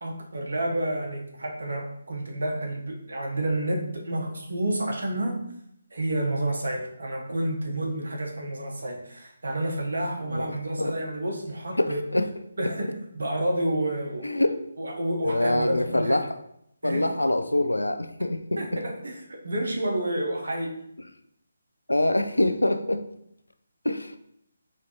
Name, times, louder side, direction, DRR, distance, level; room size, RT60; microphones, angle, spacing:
voice 1, 0.0-5.4 5.9-12.0 12.6-14.4 14.8-16.2 16.8-17.1 18.6-20.8, right 1 dB, 60° right, 0 dB, 0.8 m, -29 dB
voice 2, 10.3-11.0 11.8-12.3 12.6-12.7 14.2-14.6 15.2-16.3 16.8-18.8 21.9-23.1 23.8-24.2, left 1 dB, 80° left, 8 dB, 0.3 m, -25 dB
4.2 x 2.6 x 2.8 m, 0.74 s
figure-of-eight pair, 145°, 0 cm